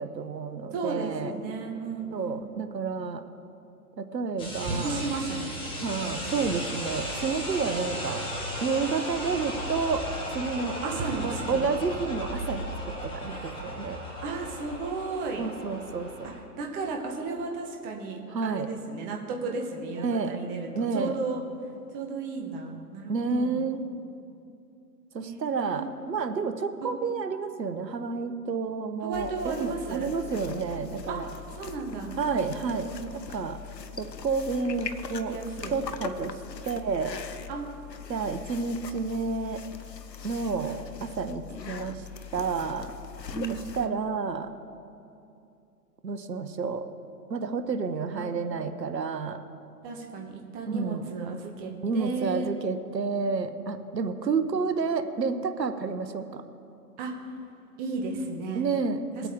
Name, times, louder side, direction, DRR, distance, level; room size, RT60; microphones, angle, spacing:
voice 1, 0.0-1.3 2.1-3.2 4.0-5.0 5.8-8.2 8.6-10.1 10.3-10.8 11.2-14.0 15.4-16.3 18.3-18.7 20.0-20.4 20.7-21.2 23.1-23.9 25.1-31.3 32.2-33.6 34.0-35.3 35.7-36.3 36.6-37.2 38.1-39.6 40.2-42.0 42.3-42.9 43.8-44.5 46.0-46.9 47.3-49.4 50.7-51.1 51.8-56.4 58.5-59.3, right 4 dB, 85° right, 9 dB, 1.0 m, -30 dB
voice 2, 0.7-2.5 4.6-5.5 6.0-6.4 10.8-11.6 13.3-13.8 14.2-15.5 16.2-21.4 21.9-23.6 25.2-25.9 26.8-27.0 29.0-30.1 31.1-31.2 31.6-32.2 32.6-33.2 35.3-35.7 37.5-38.0 43.3-44.0 48.1-48.3 49.8-52.5 57.0-57.1 57.8-58.7 59.2-59.3, right 4 dB, 20° right, 1 dB, 1.1 m, -34 dB
sound 1, 4.4-16.4, equal, 10° left, 1.6 m, -36 dB
sound 2, 29.1-43.9, left 7 dB, 90° left, 0.9 m, -41 dB
21.0 x 8.3 x 3.7 m, 2.7 s
figure-of-eight pair, 135°, 49 cm